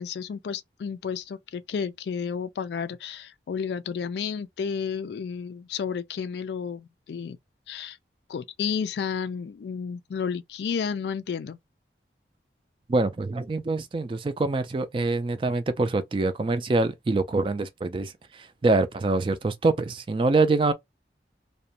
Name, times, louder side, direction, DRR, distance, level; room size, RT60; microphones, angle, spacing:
voice 1, 0.0-7.4 7.7-8.0 8.3-11.6, left 6 dB, 75° left, 0.3 m, -32 dB
voice 2, 12.9-20.7, right 3 dB, 30° right, 0.3 m, -25 dB
2.5 x 2.1 x 2.8 m
head